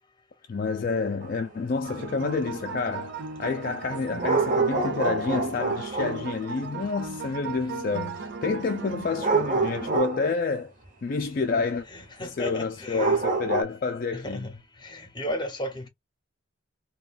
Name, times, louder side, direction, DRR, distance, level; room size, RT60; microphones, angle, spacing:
voice 1, 0.5-3.1 3.4-10.7 11.0-11.9 12.2-14.5, left 4 dB, 45° left, 0.3 m, -29 dB
sound 1, 1.2-1.4 4.1-6.3 9.2-10.3 10.8-10.9 11.2-11.3 12.0-12.1 13.0-13.6, right 3 dB, 40° right, 1.0 m, -26 dB
sound 2, 1.8-10.0, right 4 dB, 60° right, 0.5 m, -37 dB
voice 2, 11.9-13.2 14.1-14.5 14.8-15.9, left 1 dB, 20° left, 0.8 m, -34 dB
3.7 x 2.3 x 2.4 m
head